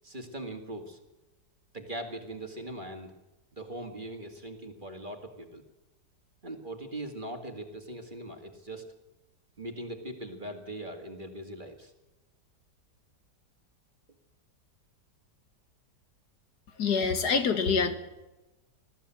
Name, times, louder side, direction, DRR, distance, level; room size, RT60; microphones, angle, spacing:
voice 1, 0.0-1.0 1.7-3.1 3.5-5.6 6.4-8.9 9.6-11.9, right 1 dB, 30° right, 5 dB, 2.2 m, -40 dB
voice 2, 16.8-18.0, left 5 dB, 65° left, 9 dB, 2.0 m, -25 dB
20.0 x 14.5 x 9.0 m, 1.0 s
omnidirectional pair, 1.9 m